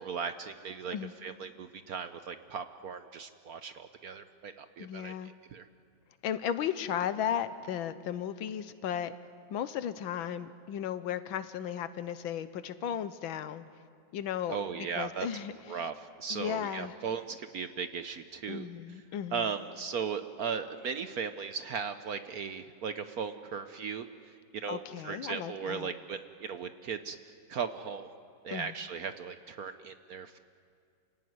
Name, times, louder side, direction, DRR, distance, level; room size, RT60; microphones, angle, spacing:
voice 1, 0.0-1.0 1.2-5.6 14.5-15.3 15.7-18.7 19.3-24.1 24.5-27.2 27.5-28.1 28.4-30.4, right 6 dB, 60° right, 10 dB, 1.0 m, -37 dB
voice 2, 4.8-5.3 6.2-9.1 9.5-13.6 14.1-15.9 16.3-17.0 18.5-19.5 24.7-25.9 28.5-28.7, left 9 dB, 80° left, 13 dB, 1.6 m, -35 dB
28.0 x 17.0 x 9.5 m, 2.3 s
omnidirectional pair, 2.2 m